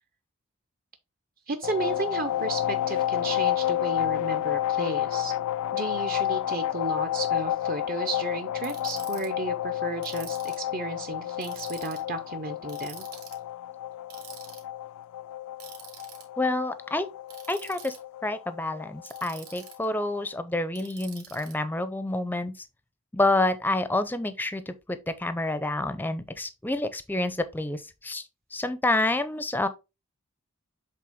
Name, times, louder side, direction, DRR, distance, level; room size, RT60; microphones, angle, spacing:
voice 1, 1.5-5.3 5.7-13.1, right 3 dB, 40° right, 0.6 m, -33 dB
sound 1, 1.6-20.2, left 12 dB, 85° left, 0.3 m, -30 dB
Ratchet pawl, 8.6-9.3 10.0-10.7 11.4-12.0 12.7-13.4 14.1-14.6 15.6-16.2 17.3-18.0 19.0-19.9 20.8-21.5, right 9 dB, 85° right, 2.6 m, -46 dB
voice 2, 16.4-17.0 17.5-17.9 18.2-22.5 23.1-28.2 28.5-29.7, left 2 dB, 10° left, 0.5 m, -28 dB
7.6 x 3.7 x 3.6 m
head